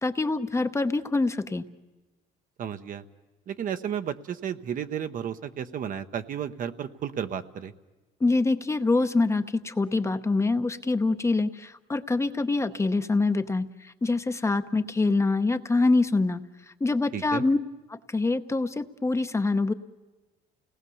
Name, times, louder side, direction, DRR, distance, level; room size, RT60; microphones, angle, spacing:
voice 1, 0.0-1.7 8.2-16.4 16.8-17.6 17.9-19.7, left 3 dB, 15° left, 9 dB, 0.8 m, -25 dB
voice 2, 2.6-3.0 3.5-7.7 17.1-17.4, right 8 dB, 55° right, 10 dB, 1.0 m, -33 dB
29.5 x 18.5 x 7.0 m, 1.2 s
cardioid pair, 110°, 17 cm